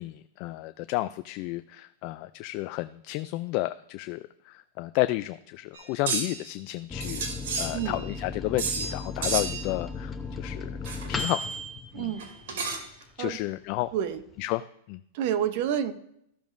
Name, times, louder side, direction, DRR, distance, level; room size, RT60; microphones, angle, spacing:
voice 1, 0.0-7.2 7.6-10.8 11.1-11.4 11.9-12.1 13.2-13.9 14.4-14.6 14.9-15.0, left 18 dB, 45° left, 12 dB, 0.3 m, -32 dB
sound 1, 5.7-6.4 7.0-8.1 8.6-9.0 9.2-9.7 10.8-11.5 12.2-13.0, right 4 dB, 70° right, 2.8 m, -32 dB
Microwave oven, 6.9-13.0 13.4-13.5 13.7-14.4, left 3 dB, 15° left, 0.8 m, -36 dB
voice 2, 11.9-12.2 13.2-13.4 13.9-14.2 15.1-15.9, right 9 dB, 55° right, 11 dB, 0.9 m, -28 dB
14.5 x 7.0 x 2.6 m, 0.73 s
hypercardioid pair, 135°, 0 cm